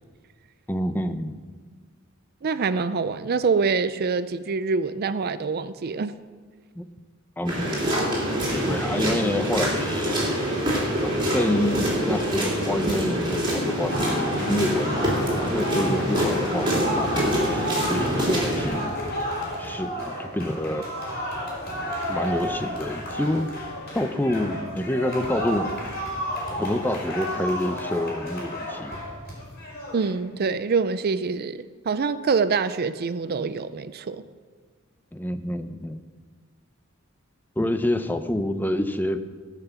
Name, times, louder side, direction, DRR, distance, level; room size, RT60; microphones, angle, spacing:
voice 1, 0.7-1.4 6.8-6.9 7.4-7.9 8.5-10.2 11.0-15.2 15.5-19.2 19.6-20.9 22.1-23.5 23.9-25.7 26.5-29.0 35.1-36.0 37.6-39.2, left 1 dB, 10° left, 0.6 m, -27 dB
voice 2, 2.4-6.1 29.9-34.2, right 5 dB, 50° right, 0.4 m, -25 dB
sound 1, 7.5-18.7, equal, 25° right, 3.5 m, -25 dB
sound 2, 13.9-30.2, equal, 50° left, 4.3 m, -32 dB
16.0 x 5.8 x 7.1 m
head